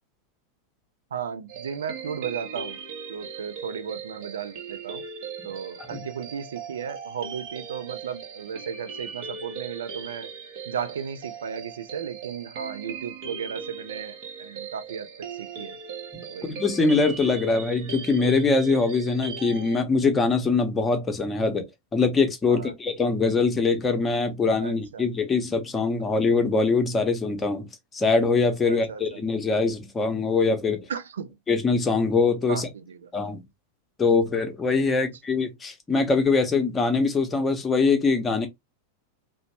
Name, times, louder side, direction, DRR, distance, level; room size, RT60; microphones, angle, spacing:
voice 1, 1.1-2.8 3.1-5.0 5.4-10.3 10.7-15.8 16.3-16.5 22.5-22.7 24.6-25.1 28.7-29.2 30.9-31.4 32.5-33.4 35.0-35.1, right 7 dB, 65° right, 0.4 m, -35 dB
sound 1, 1.5-19.8, right 6 dB, 45° right, 0.8 m, -39 dB
voice 2, 16.1-21.6 21.9-30.9 31.5-32.7 33.1-33.4 34.0-38.5, left 4 dB, 15° left, 0.8 m, -23 dB
3.0 x 2.0 x 2.8 m
figure-of-eight pair, 90°, 0 cm